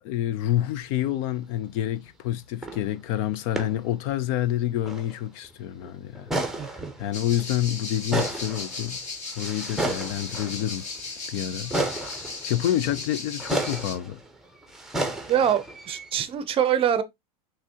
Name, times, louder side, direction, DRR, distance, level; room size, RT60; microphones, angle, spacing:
voice 1, 0.0-6.3 6.7-9.0 9.4-10.9 11.3-11.7 12.0-14.2, left 12 dB, 55° left, 0.5 m, -28 dB
sound 1, 2.6-3.0 3.5-3.8 4.1-4.2 4.8-5.2 5.4-5.5 5.8-7.6 8.0-11.1 11.7-16.1, right 2 dB, ahead, 0.9 m, -32 dB
voice 2, 6.6-6.9 15.3-17.0, right 9 dB, 30° right, 0.6 m, -24 dB
sound 2, 7.1-13.9, left 3 dB, 35° left, 1.8 m, -36 dB
5.9 x 3.2 x 2.8 m
supercardioid pair, 130°, 20 cm